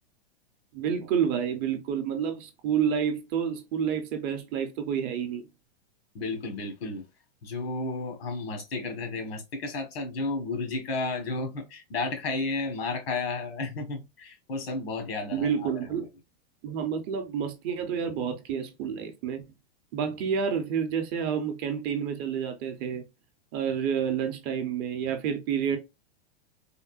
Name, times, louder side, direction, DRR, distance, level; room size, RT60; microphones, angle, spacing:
voice 1, 0.7-5.5 15.3-16.1 16.6-19.4 19.9-23.1 23.5-25.8, right 7 dB, 30° right, 0.6 m, -29 dB
voice 2, 6.1-7.0 7.4-15.7, left 3 dB, 85° left, 1.2 m, -32 dB
3.6 x 2.1 x 2.3 m
supercardioid pair, 150°, 30 cm